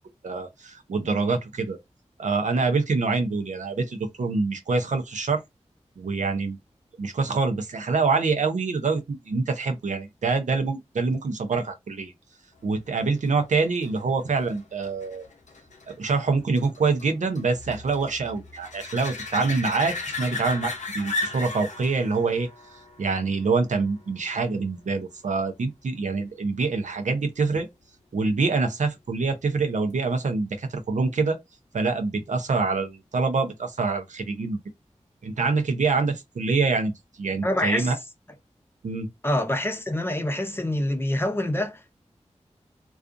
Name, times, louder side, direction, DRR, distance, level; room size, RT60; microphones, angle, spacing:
voice 1, 0.2-1.8 2.2-5.4 6.0-6.6 7.0-12.1 12.6-15.3 15.9-22.5 23.0-27.7 28.1-31.4 31.7-34.6 35.2-36.9 37.2-38.0 38.8-39.1, right 4 dB, 80° right, 0.5 m, -25 dB
sound 1, 13.0-24.3 29.9-30.0, left 3 dB, 80° left, 0.6 m, -36 dB
voice 2, 37.4-38.0 39.2-42.0, left 1 dB, 20° left, 0.6 m, -26 dB
2.4 x 2.3 x 2.4 m
cardioid pair, 40°, 12 cm